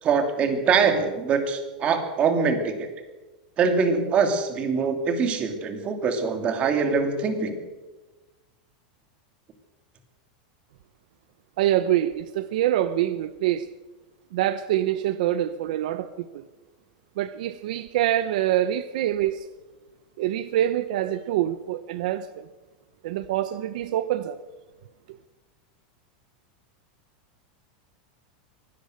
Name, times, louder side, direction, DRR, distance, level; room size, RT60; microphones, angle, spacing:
voice 1, 0.0-2.9 3.6-7.6, right 5 dB, 25° right, 6 dB, 2.8 m, -23 dB
voice 2, 11.6-13.7 14.3-16.4 17.2-19.5 20.2-22.4 23.0-24.4, right 12 dB, 65° right, 13 dB, 0.9 m, -25 dB
23.5 x 17.5 x 6.6 m, 1.2 s
supercardioid pair, 160°, 5 cm